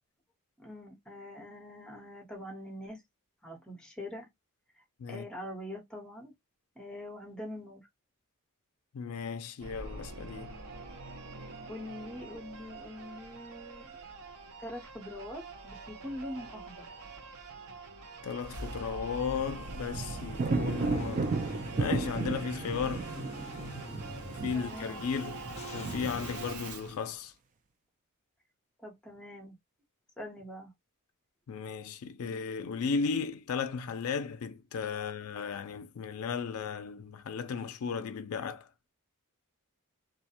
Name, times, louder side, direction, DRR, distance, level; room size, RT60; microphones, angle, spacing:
voice 1, 0.6-3.0 3.4-4.3 5.1-6.3 6.8-7.8 11.7-14.0 14.6-16.8 24.5-25.0 28.8-29.6 30.2-30.7 34.9-35.1, left 1 dB, 5° left, 0.9 m, -43 dB
voice 2, 8.9-10.6 18.2-23.1 24.4-25.4 25.7-27.3 31.5-38.7, left 6 dB, 75° left, 0.4 m, -35 dB
Singing / Musical instrument, 9.6-27.0, right 3 dB, 75° right, 0.6 m, -45 dB
sound 1, 19.3-26.8, right 3 dB, 35° right, 0.3 m, -35 dB
Car / Engine starting / Idling, 20.8-26.5, left 2 dB, 30° left, 0.6 m, -45 dB
2.4 x 2.1 x 2.7 m
head